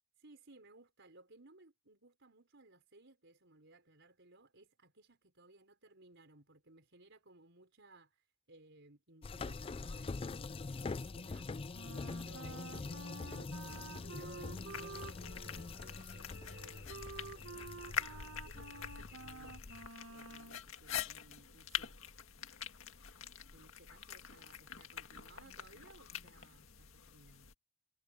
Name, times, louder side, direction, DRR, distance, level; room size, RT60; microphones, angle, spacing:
voice 1, 0.2-19.6 20.1-22.2 23.5-27.5, right 2 dB, 60° right, 5.2 m, -61 dB
sound 1, 9.2-19.9, left 4 dB, 25° left, 0.4 m, -45 dB
Wind instrument woodwind instrument, 11.7-20.6, right 3 dB, 85° right, 1.7 m, -51 dB
sound 2, 13.5-27.5, left 8 dB, 75° left, 1.9 m, -46 dB
head